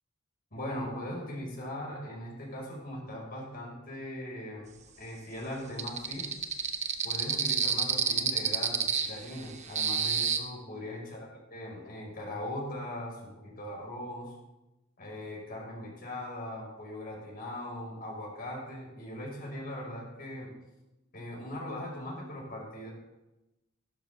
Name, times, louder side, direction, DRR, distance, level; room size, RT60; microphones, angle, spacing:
voice 1, 0.5-4.7 5.0-6.3 7.0-14.3 15.0-20.5 21.1-22.9, left 1 dB, 45° left, -2 dB, 5.0 m, -40 dB
sound 1, 5.8-10.4, right 6 dB, 35° right, 0.9 m, -29 dB
16.0 x 12.5 x 3.4 m, 0.99 s
head